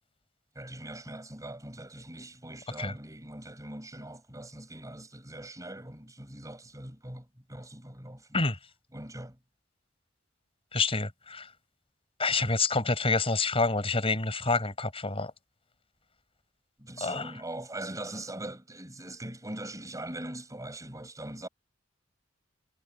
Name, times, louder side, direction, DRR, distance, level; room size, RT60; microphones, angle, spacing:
voice 1, 0.5-8.4 8.9-9.4 16.8-21.5, right 1 dB, 15° right, 7.0 m, -41 dB
voice 2, 10.7-11.5 12.2-15.3 17.0-17.2, left 3 dB, 30° left, 5.3 m, -27 dB
head